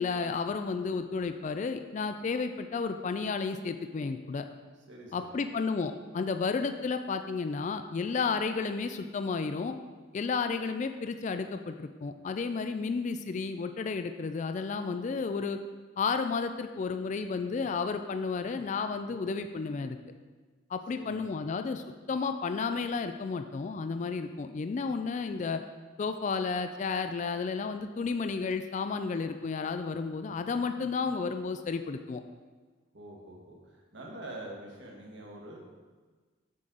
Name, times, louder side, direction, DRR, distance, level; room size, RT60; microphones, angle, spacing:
voice 1, 0.0-4.5 5.1-9.8 10.1-15.6 16.0-20.0 20.7-25.6 26.0-32.2, left 4 dB, 35° left, 8 dB, 0.3 m, -32 dB
voice 2, 4.9-5.4 12.6-12.9 20.9-21.4 32.9-35.6, right 1 dB, 65° right, -1 dB, 1.6 m, -46 dB
7.5 x 7.4 x 3.9 m, 1.4 s
head